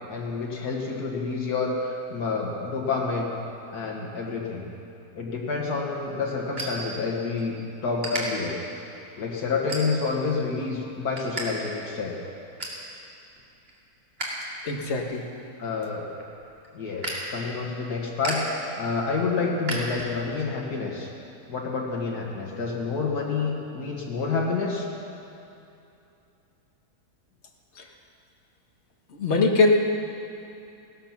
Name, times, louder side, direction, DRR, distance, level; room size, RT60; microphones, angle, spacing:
voice 1, 0.1-3.3 3.7-4.7 5.1-7.6 7.8-8.5 9.2-12.1 15.6-16.1 16.7-18.4 18.8-21.1 21.5-24.9, left 4 dB, 85° left, -2 dB, 2.2 m, -28 dB
sound 1, 5.4-7.5 7.8-8.2 8.8-9.0 9.5-10.2 10.6-11.5 11.7-11.8 12.2-12.8 13.3-14.3 14.6-20.4, right 1 dB, 40° right, 2.6 m, -36 dB
voice 2, 14.7-15.2 27.8-27.9 29.1-29.8, left 3 dB, 45° left, 2 dB, 1.6 m, -22 dB
16.5 x 13.5 x 5.9 m, 2.7 s
omnidirectional pair, 1.6 m